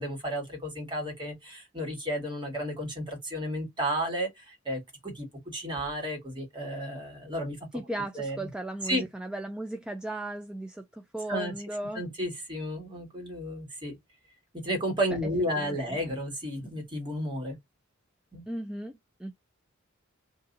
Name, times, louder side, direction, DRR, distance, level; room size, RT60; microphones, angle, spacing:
voice 1, 0.0-5.3 5.5-7.6 8.1-8.5 8.9-9.1 11.3-11.5 11.9-13.9 14.5-17.5 18.3-18.5, equal, 25° right, 1.4 m, -32 dB
voice 2, 7.7-12.1 15.1-15.2 15.6-16.0 18.5-19.3, right 1 dB, 5° right, 0.3 m, -36 dB
2.7 x 2.5 x 3.7 m
head